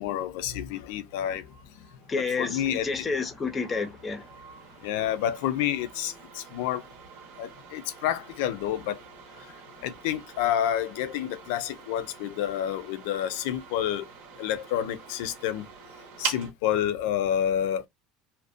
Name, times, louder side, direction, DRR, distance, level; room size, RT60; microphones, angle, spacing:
voice 1, 0.0-1.4 1.8-1.9 2.4-3.1 4.8-6.8 7.4-9.0 9.8-14.1 14.4-15.6 16.2-17.8, left 10 dB, 80° left, 0.4 m, -29 dB
sound 1, 0.8-16.5, right 6 dB, 75° right, 0.8 m, -44 dB
voice 2, 2.1-4.3, left 4 dB, 15° left, 0.5 m, -30 dB
2.5 x 2.0 x 2.4 m
cardioid pair, 155°, 0 cm